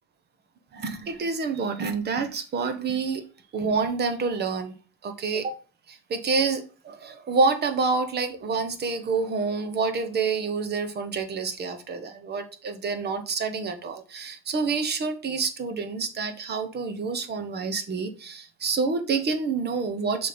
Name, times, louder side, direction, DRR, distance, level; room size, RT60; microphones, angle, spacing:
voice 1, 0.7-3.3 3.5-4.8 5.0-5.5 5.9-20.3, right 4 dB, 30° right, 1.1 m, -28 dB
6.5 x 3.4 x 5.2 m
cardioid pair, 130°, 32 cm